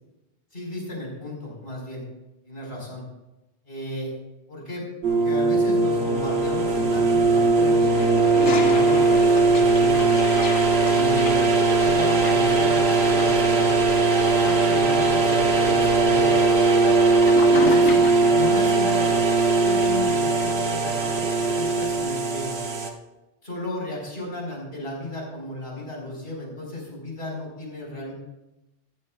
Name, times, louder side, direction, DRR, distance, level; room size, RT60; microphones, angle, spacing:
voice 1, 0.5-2.0 2.4-3.0 3.6-4.1 4.5-7.8 8.2-10.1 10.8-11.4 11.7-13.7 14.3-16.5 17.4-19.2 19.5-22.6 23.4-28.1, left 1 dB, 55° left, -2 dB, 4.8 m, -34 dB
sound 1, 5.0-22.9, right 3 dB, 60° right, 1.5 m, -20 dB
Toilet flush, 7.8-18.4, left 4 dB, 85° left, 1.5 m, -35 dB
14.5 x 14.5 x 2.4 m, 0.96 s
omnidirectional pair, 1.2 m